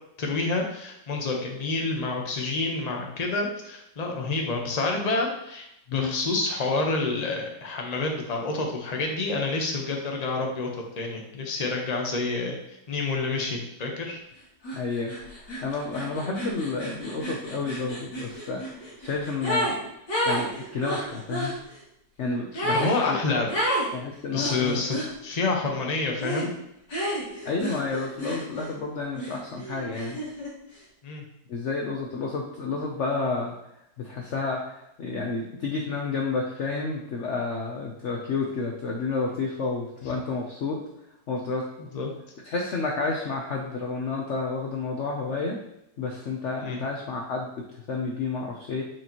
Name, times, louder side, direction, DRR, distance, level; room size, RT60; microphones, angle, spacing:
voice 1, 0.2-10.7 11.0-14.2 22.5-23.5 24.3-24.9 25.2-26.5 31.0-31.2 41.9-42.1 46.6-46.8, left 3 dB, 30° left, 1 dB, 0.9 m, -28 dB
sound 1, 14.6-14.8 15.1-19.8 20.1-21.5 22.5-22.9 23.5-23.9 24.4-25.1 26.2-26.5 26.9-28.8 29.1-30.5, equal, 75° left, 2.6 m, -30 dB
voice 2, 14.7-19.7 20.3-21.6 22.2-23.2 23.9-25.0 27.4-30.2 31.5-33.5 34.0-40.8 41.3-41.7 42.4-45.6 46.0-48.8, left 4 dB, 55° left, 0 dB, 0.9 m, -30 dB
8.8 x 4.7 x 3.0 m, 0.80 s
omnidirectional pair, 1.9 m